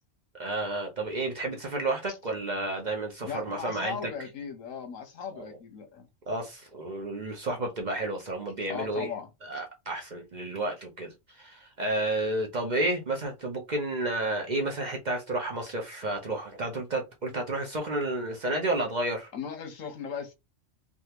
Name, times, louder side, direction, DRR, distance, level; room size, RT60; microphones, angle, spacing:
voice 1, 0.4-4.1 5.3-5.4 6.3-9.1 9.4-19.3, right 2 dB, 40° right, 0.7 m, -31 dB
voice 2, 3.2-6.1 8.7-9.3 19.3-20.3, left 7 dB, 80° left, 1.2 m, -38 dB
3.4 x 2.5 x 2.8 m
omnidirectional pair, 1.3 m